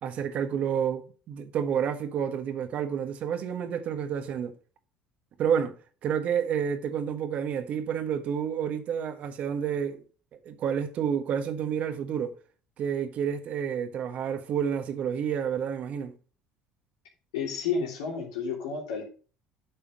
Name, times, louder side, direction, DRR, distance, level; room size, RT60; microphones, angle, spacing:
voice 1, 0.0-4.5 5.4-5.7 6.0-10.0 10.4-12.4 12.8-16.1, right 8 dB, 55° right, 1.5 m, -29 dB
voice 2, 17.3-19.0, left 5 dB, 85° left, 3.0 m, -31 dB
9.5 x 5.6 x 5.2 m
hypercardioid pair, 75°, 3 cm